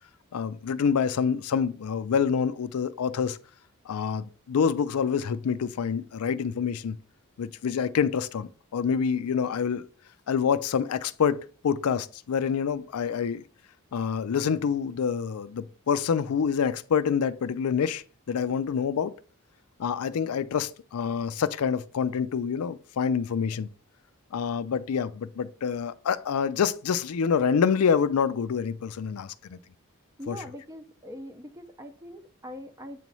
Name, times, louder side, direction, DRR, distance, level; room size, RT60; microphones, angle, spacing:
voice 1, 0.3-3.4 3.9-7.0 7.4-9.9 10.3-13.4 13.9-19.1 19.8-23.7 24.3-29.6 30.3-30.4, left 6 dB, 80° left, 0.4 m, -27 dB
voice 2, 30.2-33.0, equal, 15° right, 0.6 m, -42 dB
8.4 x 3.0 x 5.4 m
head